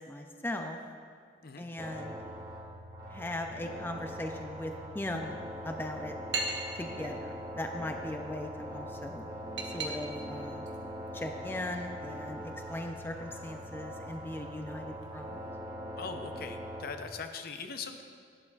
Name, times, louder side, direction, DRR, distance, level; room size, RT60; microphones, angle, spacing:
voice 1, 0.1-0.8 1.6-2.2 3.1-5.4 5.6-6.2 6.7-9.3 9.7-10.7 11.1-15.3, left 1 dB, 15° left, 4 dB, 0.4 m, -39 dB
sound 1, 1.8-16.8, equal, 25° right, 1.7 m, -42 dB
sound 2, 5.5-15.5, right 3 dB, 80° right, 1.1 m, -44 dB
voice 2, 16.0-18.0, left 5 dB, 60° left, 7 dB, 0.6 m, -41 dB
11.5 x 11.0 x 2.4 m, 2.2 s
head